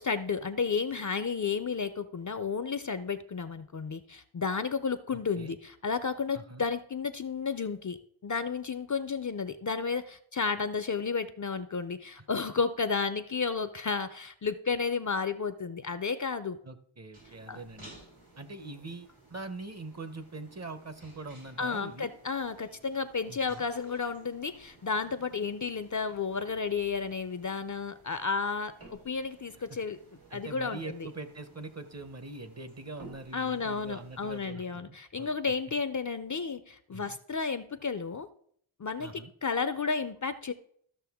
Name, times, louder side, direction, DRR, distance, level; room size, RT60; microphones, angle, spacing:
voice 1, 0.0-16.6 17.5-17.6 21.6-30.0 30.3-31.1 33.3-38.3 38.8-40.5, left 5 dB, 40° left, 12 dB, 0.5 m, -32 dB
voice 2, 16.6-17.9 18.4-22.1 23.3-23.6 29.7-29.8 30.3-35.5 36.9-37.2 39.0-39.3, right 3 dB, 35° right, 11 dB, 0.7 m, -43 dB
sound 1, 17.1-34.5, right 2 dB, 85° right, 4.9 m, -56 dB
13.5 x 6.4 x 3.5 m, 0.65 s
wide cardioid pair, 85°, 49 cm